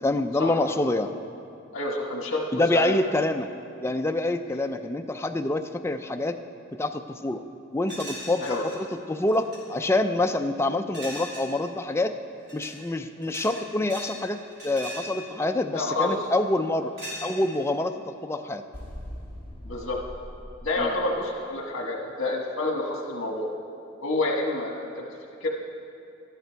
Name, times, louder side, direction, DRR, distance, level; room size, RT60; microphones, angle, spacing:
voice 1, 0.0-1.1 2.5-3.5 3.8-6.4 6.7-7.4 7.7-12.1 12.5-16.9 17.2-18.6 20.8-20.9, left 2 dB, 15° left, 6 dB, 0.4 m, -26 dB
voice 2, 1.7-2.9 4.5-4.6 8.4-8.6 15.7-16.2 19.6-20.0 20.6-23.5 24.0-25.0 25.4-25.5, left 2 dB, 70° left, -1 dB, 1.3 m, -28 dB
sound 1, 7.9-8.8 9.2-9.6 10.9-11.5 12.4-12.8 13.2-14.2 14.5-15.1 16.1-16.4 17.0-17.6, equal, 55° right, 3.3 m, -39 dB
sound 2, 18.7-21.5, equal, 10° right, 3.3 m, -41 dB
13.5 x 10.5 x 4.5 m, 2.6 s
head